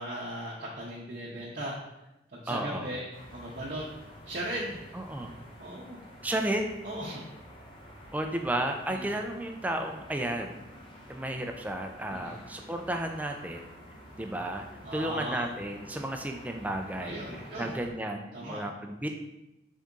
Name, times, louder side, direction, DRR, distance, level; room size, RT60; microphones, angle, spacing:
voice 1, 0.0-1.7 2.3-3.8 4.3-5.0 5.6-6.0 6.8-7.2 8.9-9.2 12.1-12.4 14.8-15.4 17.0-17.7 18.3-18.6, right 1 dB, 45° right, -5 dB, 0.7 m, -37 dB
voice 2, 2.5-2.9 4.9-5.3 6.2-6.7 8.1-10.6 11.1-13.7 14.2-14.7 14.9-19.1, right 1 dB, 10° right, 4 dB, 0.3 m, -33 dB
sound 1, 3.1-17.9, equal, 25° left, 0.8 m, -50 dB
4.0 x 3.6 x 3.7 m, 0.94 s
head